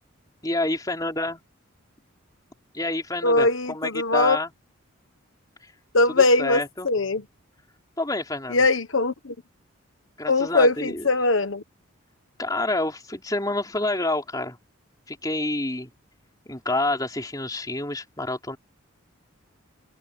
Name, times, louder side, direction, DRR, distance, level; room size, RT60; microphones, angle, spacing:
voice 1, 0.4-1.4 2.7-4.5 6.1-6.9 8.0-8.6 10.2-11.1 12.4-14.6 15.1-15.9 16.5-18.6, left 2 dB, 20° left, 3.5 m, -28 dB
voice 2, 3.2-4.4 5.9-7.2 8.5-9.3 10.3-11.6, left 2 dB, 70° left, 1.3 m, -21 dB
open air
head